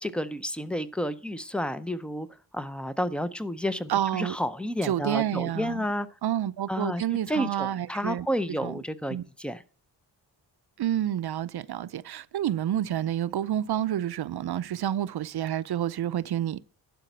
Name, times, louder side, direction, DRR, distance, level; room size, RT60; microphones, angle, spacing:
voice 1, 0.0-2.3 2.5-6.1 6.7-7.0 7.3-9.6, equal, 5° left, 0.5 m, -31 dB
voice 2, 3.9-4.4 4.8-5.9 6.2-8.3 8.6-8.8 9.1-9.2 10.8-16.6, right 11 dB, 65° right, 0.6 m, -29 dB
11.5 x 5.1 x 7.9 m
wide cardioid pair, 160°, 43 cm